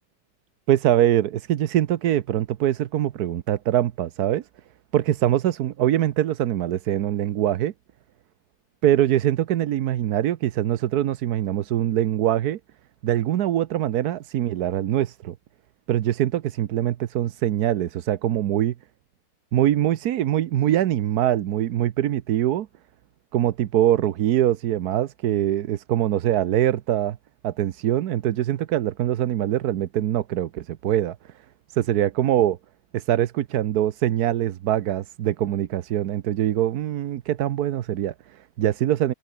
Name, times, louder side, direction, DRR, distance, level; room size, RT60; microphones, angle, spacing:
voice 1, 0.7-4.5 4.9-7.7 8.8-12.6 13.0-15.3 15.9-18.7 19.5-22.7 23.3-27.2 27.4-31.2 31.7-32.6 32.9-39.1, right 12 dB, 75° right, 1.3 m, -23 dB
omnidirectional pair, 1.7 m